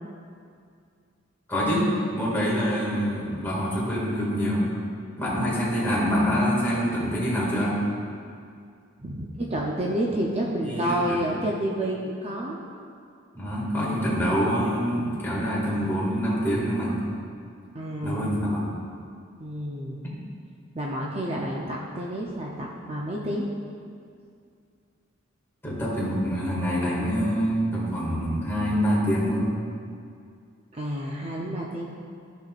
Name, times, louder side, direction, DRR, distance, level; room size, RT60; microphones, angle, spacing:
voice 1, 1.5-1.9 2.1-4.8 5.2-7.7 10.7-11.3 13.3-17.0 18.0-18.7 25.6-29.4, equal, 10° left, -7 dB, 2.0 m, -25 dB
voice 2, 9.0-12.6 17.7-18.3 19.4-20.0 20.7-23.5 30.7-31.9, right 1 dB, 30° right, -3 dB, 0.6 m, -29 dB
13.5 x 5.6 x 2.5 m, 2.3 s
head